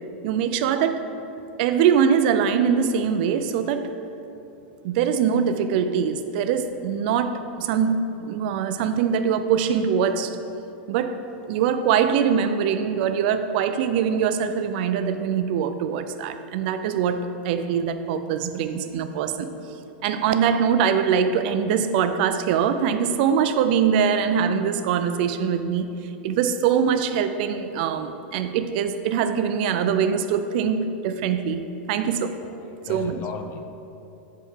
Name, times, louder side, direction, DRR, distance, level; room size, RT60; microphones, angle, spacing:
voice 1, 0.2-1.0 1.6-3.9 4.8-10.4 10.9-11.2 11.5-19.5 20.0-25.9 26.2-31.6 31.9-32.3 32.9-33.2, right 7 dB, 55° right, 9 dB, 0.4 m, -23 dB
voice 2, 4.5-5.0 32.4-33.6, left 5 dB, 35° left, 6 dB, 0.5 m, -38 dB
6.5 x 4.2 x 3.6 m, 2.9 s
supercardioid pair, 135°, 6 cm